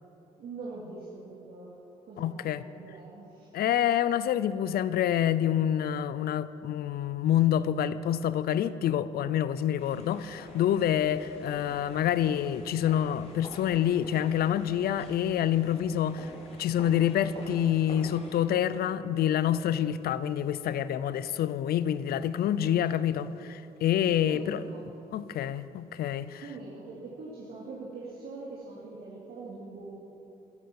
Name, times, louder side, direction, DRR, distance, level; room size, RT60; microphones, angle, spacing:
voice 1, 0.4-1.8 2.1-2.5 2.8-3.5 24.2-24.9 26.4-30.0, right 3 dB, 65° right, 2.8 m, -43 dB
voice 2, 2.2-2.6 3.5-16.3 16.6-24.6 25.1-26.4, left 10 dB, 65° left, 0.6 m, -27 dB
sound 1, 9.8-18.4, left 1 dB, 40° left, 3.8 m, -48 dB
15.5 x 13.0 x 6.0 m
supercardioid pair, 60°, 17 cm